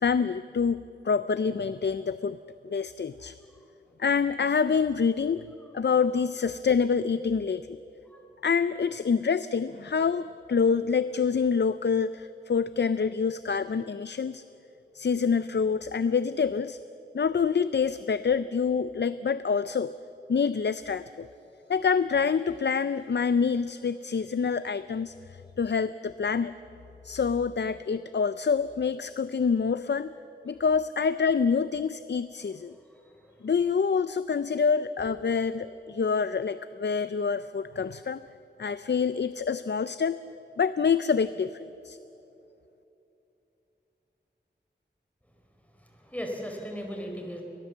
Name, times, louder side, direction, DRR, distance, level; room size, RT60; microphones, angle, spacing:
voice 1, 0.0-2.4 2.6-3.3 4.0-5.4 5.7-7.8 8.4-14.4 14.9-16.8 17.1-19.9 20.3-21.3 21.7-26.5 27.0-30.1 30.4-32.7 33.4-38.2 38.6-40.2 40.6-42.0, left 5 dB, 65° left, 14 dB, 0.5 m, -26 dB
voice 2, 32.9-33.5 45.7-47.4, equal, 5° left, 1 dB, 4.5 m, -38 dB
23.5 x 18.5 x 7.3 m, 2.9 s
wide cardioid pair, 60°, 19 cm